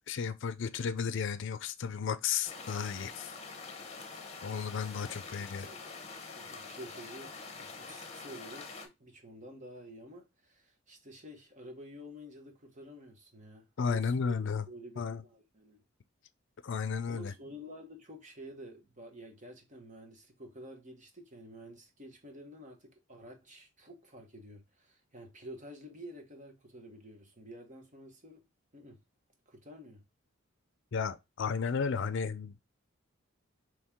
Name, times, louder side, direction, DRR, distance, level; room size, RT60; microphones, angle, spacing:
voice 1, 0.1-3.3 4.4-5.7 13.8-14.7 15.0-15.2 16.6-17.3 30.9-32.6, left 6 dB, 65° left, 0.5 m, -33 dB
sound 1, 2.4-8.9, left 4 dB, 35° left, 1.0 m, -45 dB
voice 2, 6.3-14.4 14.7-15.8 17.1-28.4 28.7-29.0 29.5-30.0, equal, 40° right, 1.2 m, -50 dB
4.4 x 3.2 x 3.6 m
head